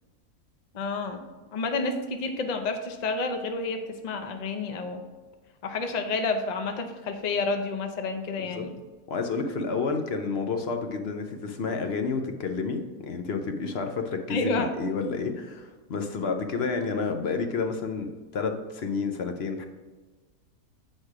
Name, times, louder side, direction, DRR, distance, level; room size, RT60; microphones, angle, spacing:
voice 1, 0.7-1.2 1.5-5.0 5.6-8.8 14.3-14.7, left 3 dB, 85° left, 6 dB, 0.3 m, -30 dB
voice 2, 8.4-8.7 9.1-19.7, left 4 dB, 55° left, 6 dB, 0.7 m, -30 dB
8.0 x 4.3 x 4.8 m, 1.3 s
omnidirectional pair, 1.7 m